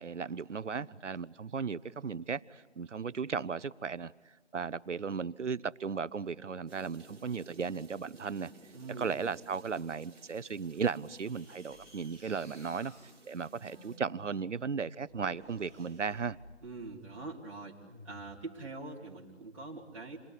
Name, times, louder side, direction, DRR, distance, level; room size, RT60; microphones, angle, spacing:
voice 1, 0.0-4.1 4.5-8.5 9.0-12.9 13.2-16.4, right 5 dB, 90° right, 0.9 m, -36 dB
sound 1, 6.7-14.0, right 3 dB, 10° right, 2.4 m, -57 dB
voice 2, 8.7-9.2 16.6-17.8 18.0-20.2, right 3 dB, 30° right, 3.0 m, -44 dB
sound 2, 11.0-16.9 17.8-18.5, equal, 15° left, 1.8 m, -56 dB
28.5 x 22.0 x 8.4 m
figure-of-eight pair, 175°, 35 cm